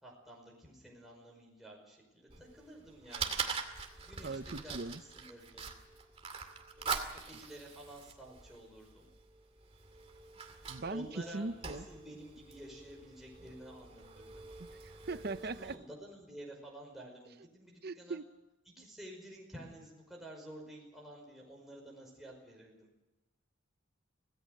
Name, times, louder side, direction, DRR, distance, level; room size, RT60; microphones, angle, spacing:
voice 1, 0.0-3.4 4.1-5.6 6.8-9.1 10.9-14.4 15.4-18.2 18.7-22.9, right 1 dB, ahead, -2 dB, 5.3 m, -51 dB
Fire, 2.3-15.7, right 5 dB, 30° right, 2.3 m, -44 dB
voice 2, 4.2-5.0 10.7-11.1 11.3-11.9 15.1-15.8 17.8-18.3 18.8-18.9, right 3 dB, 50° right, 14 dB, 0.7 m, -39 dB
25.5 x 17.5 x 6.6 m, 1.0 s
head